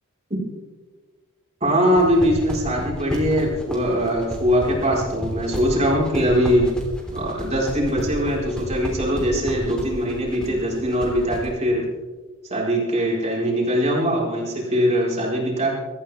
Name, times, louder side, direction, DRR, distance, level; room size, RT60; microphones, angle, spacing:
voice 1, 1.6-6.7 7.1-11.8 12.5-15.8, equal, 30° right, -4 dB, 4.7 m, -21 dB
sound 1, 1.8-11.4, equal, 5° left, 3.4 m, -32 dB
24.0 x 14.0 x 3.6 m, 1.3 s
head